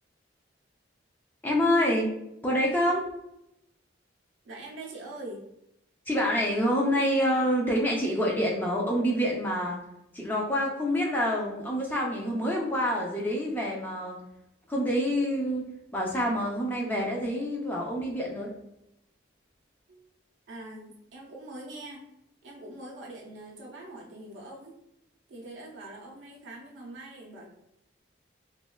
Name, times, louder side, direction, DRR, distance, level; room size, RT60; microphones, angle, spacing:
voice 1, 1.4-2.1 2.4-3.2 6.1-9.8 10.1-14.2 14.7-18.5, equal, 10° left, -2 dB, 0.4 m, -27 dB
voice 2, 4.4-5.4 19.9-20.0 20.5-22.0 22.4-24.7 25.3-27.5, right 2 dB, 75° right, -2 dB, 0.5 m, -43 dB
3.1 x 2.2 x 2.2 m, 0.82 s
head